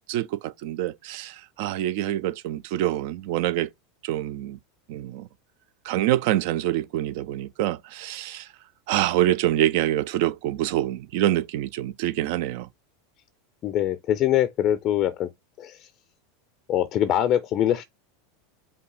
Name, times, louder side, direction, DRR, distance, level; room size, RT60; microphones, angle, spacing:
voice 1, 0.1-3.7 4.0-4.6 4.9-5.3 5.8-8.5 8.9-12.7, right 13 dB, 55° right, 0.3 m, -26 dB
voice 2, 13.6-15.3 15.6-15.9 16.7-17.8, left 11 dB, 40° left, 0.4 m, -23 dB
5.3 x 2.3 x 3.9 m
figure-of-eight pair, 85°, 0 cm